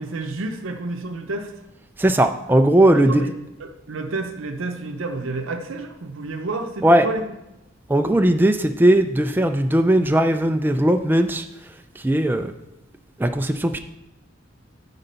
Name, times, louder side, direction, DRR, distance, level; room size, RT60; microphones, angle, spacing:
voice 1, 0.0-1.5 2.9-3.3 3.6-7.2, right 3 dB, 75° right, 5 dB, 0.7 m, -30 dB
voice 2, 2.0-3.3 6.8-7.1 7.9-11.4 12.0-12.5 13.2-13.8, right 1 dB, 10° right, 6 dB, 0.3 m, -18 dB
9.0 x 4.0 x 5.6 m, 0.93 s
head